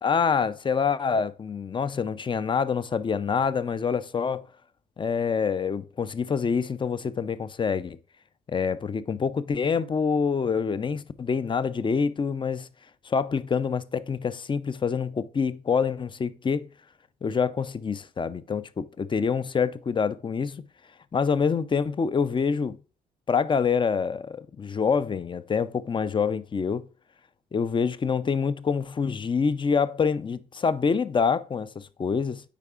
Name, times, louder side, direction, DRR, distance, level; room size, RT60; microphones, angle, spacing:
voice 1, 0.0-4.5 5.0-8.0 8.5-12.7 13.0-16.7 17.2-20.6 21.1-22.8 23.3-26.9 27.5-32.4, left 6 dB, 25° left, 0.5 m, -26 dB
8.2 x 4.8 x 2.4 m
hypercardioid pair, 50°, 19 cm